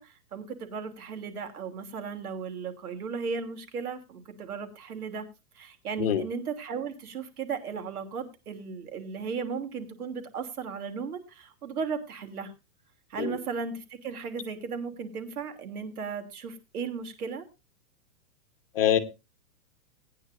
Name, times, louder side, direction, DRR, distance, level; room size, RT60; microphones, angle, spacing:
voice 1, 0.0-5.2 5.5-12.5 13.1-17.5, right 5 dB, 65° right, 3.0 m, -36 dB
voice 2, 6.0-6.2 13.2-13.4 18.7-19.0, left 9 dB, 35° left, 1.1 m, -24 dB
18.5 x 9.8 x 2.5 m
hypercardioid pair, 180°, 47 cm